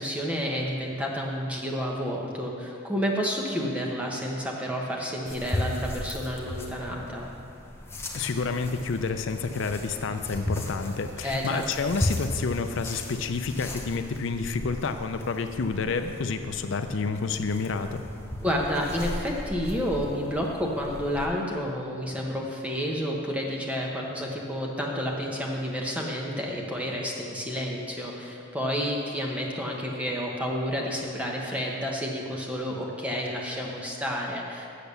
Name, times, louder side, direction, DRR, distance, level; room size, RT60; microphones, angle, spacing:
voice 1, 0.0-7.3 11.2-11.6 18.4-34.7, equal, 5° right, -2 dB, 1.1 m, -30 dB
sound 1, 5.3-21.3, left 1 dB, 10° left, 0.8 m, -36 dB
voice 2, 8.1-18.0, left 4 dB, 70° left, 8 dB, 0.5 m, -29 dB
8.4 x 6.9 x 6.8 m, 2.5 s
head